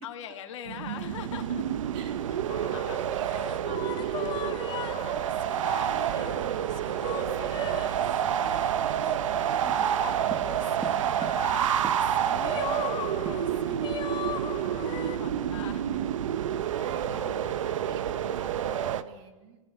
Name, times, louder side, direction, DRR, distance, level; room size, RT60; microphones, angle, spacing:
voice 1, 0.0-1.7 2.3-2.4 2.7-3.6 12.2-16.0 16.9-17.7, left 10 dB, 65° left, 4 dB, 3.0 m, -44 dB
sound 1, 0.7-19.0, right 10 dB, 75° right, 1.3 m, -29 dB
voice 2, 1.9-4.5 4.8-8.6 8.9-11.6 12.6-12.9 16.6-19.6, right 7 dB, 35° right, 3 dB, 3.9 m, -47 dB
sound 2, 2.5-15.2, left 9 dB, 30° left, 3.8 m, -39 dB
sound 3, 9.7-12.3 12.6-12.7 13.0-14.0 14.2-14.5 14.8-15.1, right 6 dB, 15° right, 0.7 m, -43 dB
28.0 x 18.5 x 9.6 m, 1.2 s
hypercardioid pair, 130°, 17 cm